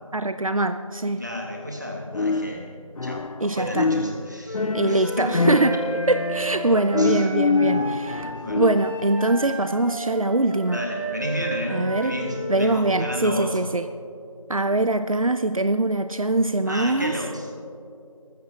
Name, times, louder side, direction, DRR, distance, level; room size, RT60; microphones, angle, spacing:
voice 1, 0.1-1.2 3.4-3.9 4.7-5.7 6.1-8.3 8.6-10.8 11.7-12.1 12.5-13.9 14.5-17.1, right 2 dB, 75° right, 10 dB, 0.6 m, -23 dB
voice 2, 1.0-2.7 3.0-5.4 7.0-7.8 8.4-8.6 10.7-13.6 16.2-16.3 16.7-17.5, left 1 dB, 30° right, 0 dB, 1.7 m, -32 dB
sound 1, 2.1-3.5 3.7-9.0, left 4 dB, 85° left, 0.5 m, -26 dB
Wind instrument woodwind instrument, 4.4-12.8, right 3 dB, 35° left, 2.5 m, -33 dB
19.0 x 15.0 x 2.9 m, 2.7 s
figure-of-eight pair, 180°, 18 cm